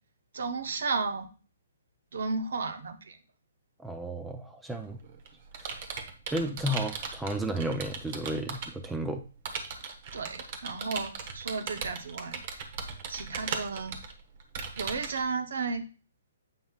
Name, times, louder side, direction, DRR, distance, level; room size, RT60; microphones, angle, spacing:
voice 1, 0.3-1.3 2.1-3.2 10.1-12.4 13.1-14.0 14.7-15.9, right 4 dB, 75° right, 8 dB, 0.9 m, -33 dB
voice 2, 3.8-5.0 5.6-5.7 6.3-9.2, right 1 dB, 5° right, 6 dB, 0.5 m, -33 dB
Computer keyboard, 4.8-8.9 9.5-15.2, right 5 dB, 45° right, 1.0 m, -38 dB
7.6 x 5.3 x 2.4 m, 0.36 s
hypercardioid pair, 150°, 0 cm